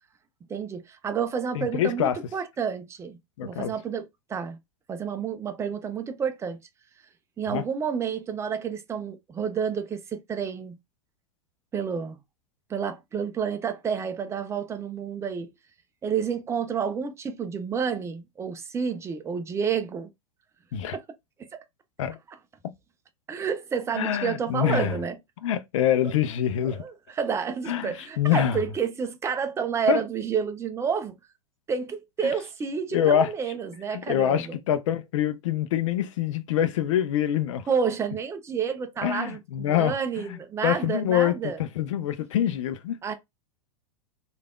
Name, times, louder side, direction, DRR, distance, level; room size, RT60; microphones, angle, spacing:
voice 1, 0.5-4.6 4.9-6.6 7.4-10.8 11.7-12.2 12.7-15.5 16.0-20.1 20.9-21.0 23.3-25.2 26.7-31.2 31.7-34.6 37.7-41.6 43.0-43.1, right 6 dB, 15° right, 0.5 m, -30 dB
voice 2, 1.5-2.2 3.4-3.7 7.5-7.6 20.7-21.0 22.0-22.2 23.9-24.9 25.4-26.8 27.7-28.6 29.9-30.0 32.9-33.3 33.9-37.7 39.0-43.0, left 10 dB, 55° left, 0.5 m, -25 dB
3.3 x 2.4 x 2.2 m
figure-of-eight pair, 95°, 19 cm